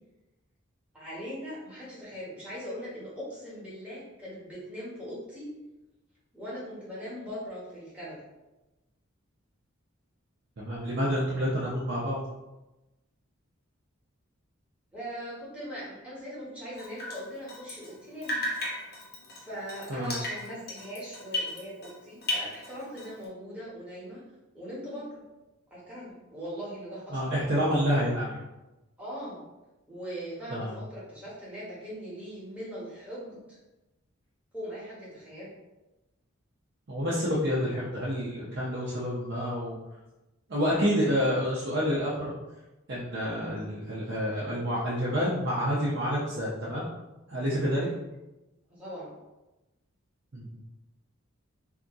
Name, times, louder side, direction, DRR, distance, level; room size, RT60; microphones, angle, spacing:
voice 1, 0.9-5.5 6.3-8.2 14.9-18.4 19.4-24.2 24.5-25.2 25.7-27.2 29.0-29.4 29.9-33.6 34.5-35.5 48.7-49.2, equal, 5° right, -8 dB, 1.2 m, -40 dB
voice 2, 10.6-12.2 19.9-20.1 27.1-28.4 30.5-30.8 36.9-39.8 40.5-42.3 42.9-46.9 47.3-47.9 50.3-50.6, equal, 50° right, -7 dB, 0.6 m, -28 dB
Drip, 16.8-18.0 18.2-22.0 22.2-23.2, left 1 dB, 50° left, 0.7 m, -35 dB
2.7 x 2.6 x 3.5 m, 1.0 s
head